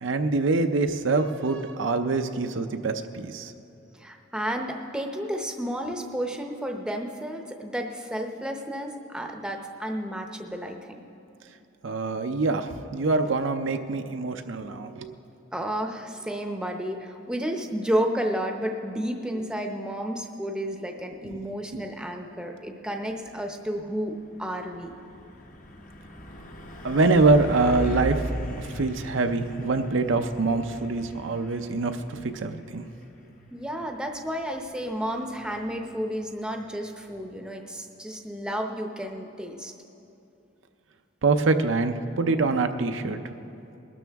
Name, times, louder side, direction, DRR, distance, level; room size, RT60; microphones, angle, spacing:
voice 1, 0.0-3.5 11.8-15.1 21.2-21.4 26.8-28.2 28.6-32.8 41.2-43.2, right 3 dB, 70° right, 7 dB, 0.6 m, -24 dB
voice 2, 4.0-11.0 15.5-24.9 33.5-39.7, equal, 5° right, 3 dB, 0.7 m, -31 dB
Truck, 23.1-37.4, equal, 45° left, 0.9 m, -39 dB
20.5 x 12.5 x 3.5 m, 2.7 s
head